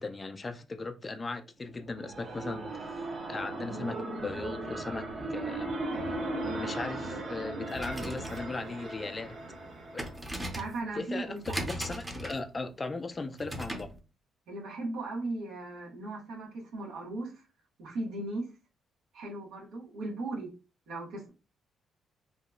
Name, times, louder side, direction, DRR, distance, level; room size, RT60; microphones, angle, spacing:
voice 1, 0.0-5.8 6.4-9.4 9.9-10.0 11.0-13.9, left 3 dB, 25° left, 0.3 m, -38 dB
sound 1, 1.7-10.5, right 2 dB, 55° right, 0.8 m, -37 dB
sound 2, 7.6-14.0, right 1 dB, 15° right, 0.6 m, -40 dB
voice 2, 10.5-11.6 14.5-17.4 17.8-18.5 19.1-20.5 20.9-21.3, right 2 dB, 85° right, 1.0 m, -37 dB
2.7 x 2.3 x 2.3 m
cardioid pair, 90°, 0 cm